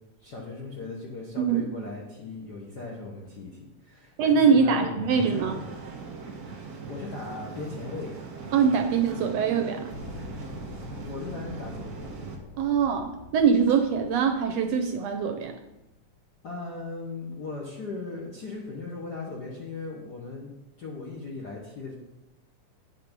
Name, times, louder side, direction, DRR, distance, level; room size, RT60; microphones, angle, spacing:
voice 1, 0.2-5.8 6.4-6.6 6.9-8.2 11.0-12.1 16.4-20.5 20.8-21.9, left 3 dB, 60° left, -3 dB, 1.0 m, -38 dB
voice 2, 1.4-1.7 4.2-5.6 8.5-9.9 12.6-15.5, right 6 dB, 75° right, 5 dB, 1.6 m, -23 dB
sound 1, 5.1-12.4, right 4 dB, 45° right, 1.4 m, -40 dB
sound 2, 9.9-16.2, left 3 dB, 80° left, 2.4 m, -45 dB
8.5 x 6.0 x 5.2 m, 0.94 s
omnidirectional pair, 3.4 m